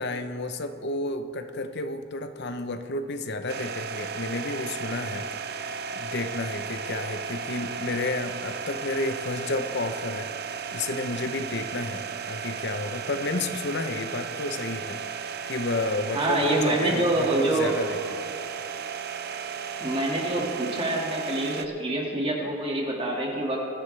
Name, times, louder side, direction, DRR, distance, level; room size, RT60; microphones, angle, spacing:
voice 1, 0.0-5.3 5.5-10.3 10.7-15.0 15.5-18.2, left 2 dB, 55° left, 8 dB, 0.8 m, -31 dB
sound 1, 3.5-21.7, right 6 dB, 50° right, 0.6 m, -35 dB
voice 2, 16.1-17.8 19.8-23.6, right 1 dB, 25° right, -2 dB, 2.0 m, -26 dB
23.0 x 11.0 x 3.4 m, 2.4 s
head